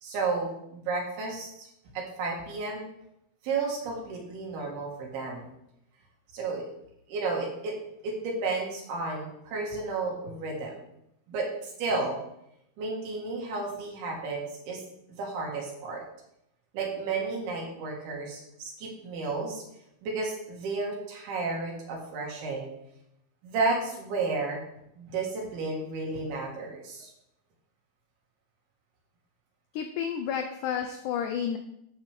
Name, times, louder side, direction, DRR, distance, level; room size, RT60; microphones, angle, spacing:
voice 1, 0.0-1.7 1.9-2.9 3.4-5.5 6.3-6.7 7.1-7.8 8.0-10.8 11.3-12.2 12.8-14.8 15.2-16.0 16.7-19.6 20.0-22.7 23.4-24.6 25.0-27.1, right 3 dB, 80° right, -1 dB, 4.1 m, -32 dB
voice 2, 29.7-31.6, left 8 dB, 85° left, 6 dB, 1.8 m, -31 dB
11.5 x 8.2 x 3.7 m, 0.80 s
omnidirectional pair, 4.4 m